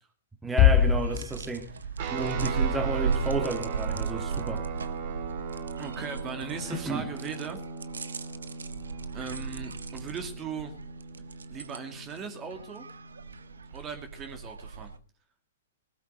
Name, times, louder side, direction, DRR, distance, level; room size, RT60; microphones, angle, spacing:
voice 1, 0.4-1.7 2.1-4.6 6.7-7.1, right 2 dB, 5° right, 2.3 m, -32 dB
sound 1, 0.6-2.5, left 9 dB, 30° left, 1.5 m, -23 dB
sound 2, 0.8-15.0, right 5 dB, 70° right, 1.2 m, -36 dB
sound 3, 2.0-13.7, right 5 dB, 45° right, 3.2 m, -39 dB
voice 2, 5.8-7.6 9.1-10.7 11.5-12.9 13.7-14.9, right 5 dB, 25° right, 2.3 m, -38 dB
20.0 x 13.5 x 3.9 m
figure-of-eight pair, 115°, 0 cm